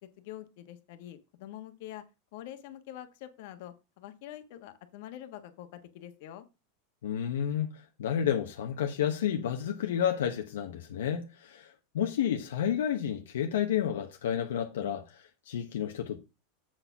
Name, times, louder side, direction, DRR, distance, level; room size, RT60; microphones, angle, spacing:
voice 1, 0.2-2.0 2.3-6.4, left 12 dB, 65° left, 1.3 m, -45 dB
voice 2, 7.0-7.7 8.0-16.2, left 9 dB, 85° left, 1.0 m, -31 dB
7.7 x 4.3 x 5.7 m
supercardioid pair, 120°, 0 cm